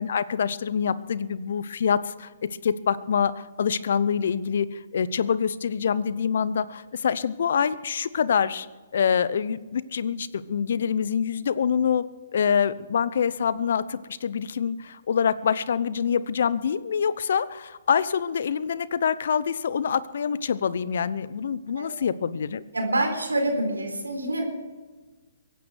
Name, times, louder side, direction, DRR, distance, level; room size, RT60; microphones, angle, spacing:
voice 1, 0.0-8.7 8.9-12.1 12.3-22.6, left 7 dB, 60° left, 17 dB, 0.7 m, -25 dB
voice 2, 22.7-24.4, right 1 dB, 85° right, 4 dB, 4.0 m, -26 dB
23.0 x 9.4 x 6.4 m, 1.3 s
figure-of-eight pair, 130°, 0 cm